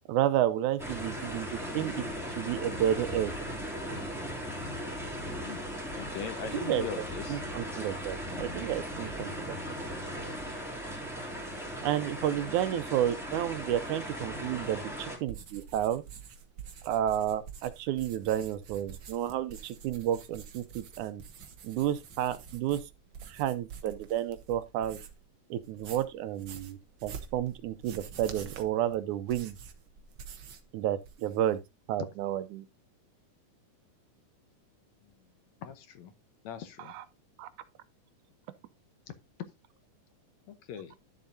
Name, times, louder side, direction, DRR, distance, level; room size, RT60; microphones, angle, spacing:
voice 1, 0.1-2.1 2.4-3.3 6.5-9.6 11.8-16.0 16.8-21.2 21.6-22.8 23.3-25.0 25.5-29.6 30.7-31.6 31.9-32.7 36.8-37.0 37.4-37.5, right 11 dB, 75° right, 2.1 m, -31 dB
sound 1, 0.8-15.2, equal, ahead, 2.2 m, -38 dB
voice 2, 5.9-7.4 35.6-36.1 36.4-36.9 40.5-40.9, left 8 dB, 70° left, 2.0 m, -40 dB
sound 2, 15.2-25.3 25.6-30.7 31.0-31.5, right 7 dB, 60° right, 1.3 m, -47 dB
12.0 x 7.3 x 2.7 m
omnidirectional pair, 3.6 m